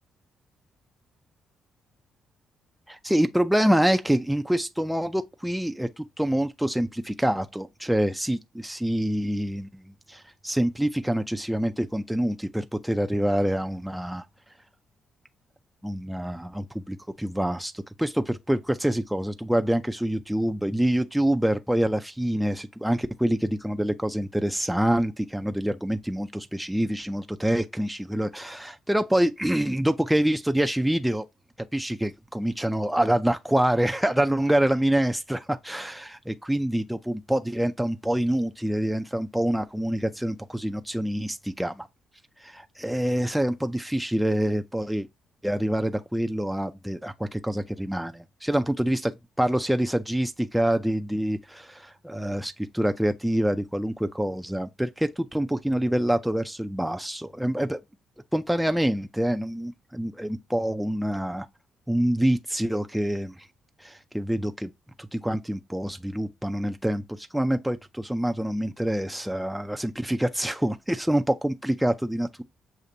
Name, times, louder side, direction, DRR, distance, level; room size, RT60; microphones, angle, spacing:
voice 1, 2.9-9.8 10.1-14.2 15.8-31.3 31.7-41.9 42.4-45.1 45.4-49.1 49.4-57.8 58.3-61.5 61.9-63.3 63.8-64.7 65.0-72.4, right 1 dB, 5° right, 0.4 m, -26 dB
6.5 x 2.5 x 2.7 m
cardioid pair, 90°, 0 cm